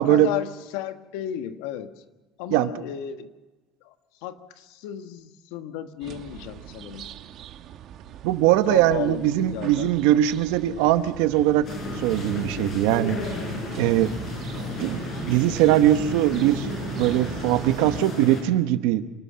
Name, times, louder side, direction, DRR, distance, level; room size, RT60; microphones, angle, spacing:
voice 1, 0.0-2.0 2.4-3.3 3.8-3.9 4.2-7.1 8.7-10.2 10.5-11.0, left 10 dB, 80° left, 9 dB, 1.4 m, -34 dB
sound 1, 6.0-18.0, right 10 dB, 45° right, 1.0 m, -41 dB
voice 2, 8.2-11.7 12.0-13.2 13.8-14.1 14.8-16.7 17.0-19.0, right 13 dB, 80° right, 11 dB, 1.1 m, -21 dB
sound 2, 11.6-18.4, left 2 dB, 35° left, 6.7 m, -33 dB
27.0 x 13.0 x 7.5 m, 1.2 s
cardioid pair, 165°, 0 cm